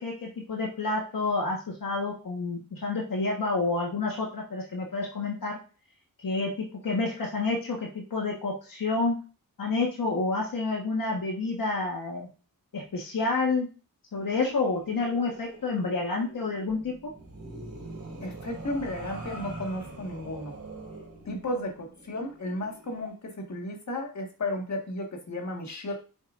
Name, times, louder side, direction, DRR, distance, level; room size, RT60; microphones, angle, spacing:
voice 1, 0.0-5.6 6.2-9.2 9.6-12.3 12.7-13.7 14.1-16.9, left 3 dB, 70° left, -1 dB, 1.5 m, -29 dB
sound 1, 14.2-23.1, right 2 dB, 50° right, 3.7 m, -44 dB
voice 2, 18.2-20.5 21.3-26.0, left 1 dB, 50° left, 2 dB, 1.7 m, -34 dB
8.6 x 7.2 x 2.5 m, 0.36 s
wide cardioid pair, 170°, 35 cm